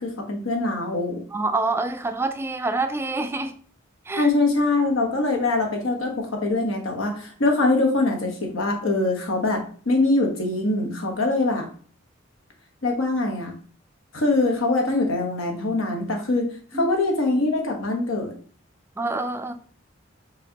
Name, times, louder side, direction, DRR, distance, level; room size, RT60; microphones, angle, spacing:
voice 1, 0.0-1.2 4.2-11.7 12.8-13.5 14.1-18.3, left 2 dB, 80° left, 1.1 m, -23 dB
voice 2, 1.3-3.5 4.1-4.3 16.7-16.9 19.0-19.5, right 3 dB, 10° right, 0.3 m, -26 dB
5.1 x 3.2 x 2.8 m
head